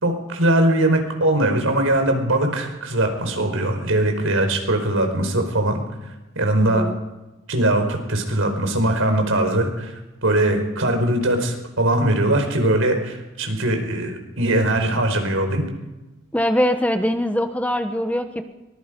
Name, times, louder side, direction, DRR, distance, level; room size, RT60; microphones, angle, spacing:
voice 1, 0.0-5.8 6.3-6.8 7.5-9.9 10.2-15.6, right 1 dB, 80° right, 5 dB, 4.8 m, -21 dB
voice 2, 6.5-7.0 16.3-18.4, equal, 5° left, 7 dB, 1.1 m, -22 dB
23.5 x 21.0 x 5.3 m, 1.1 s
head